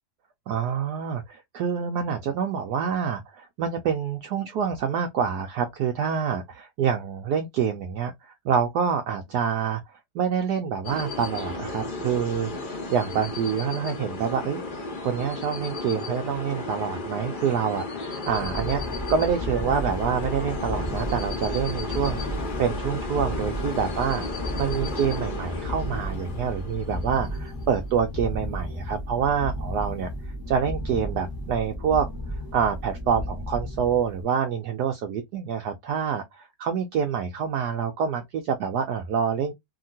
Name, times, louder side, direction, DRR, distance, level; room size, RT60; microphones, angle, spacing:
voice 1, 0.5-9.8 10.1-14.6 15.0-18.8 19.1-30.1 30.5-32.1 32.5-39.5, right 7 dB, 85° right, 0.8 m, -27 dB
sound 1, 10.8-27.6, left 3 dB, 80° left, 0.4 m, -34 dB
sound 2, 18.2-34.2, equal, 15° left, 0.8 m, -33 dB
2.8 x 2.8 x 2.6 m
omnidirectional pair, 2.3 m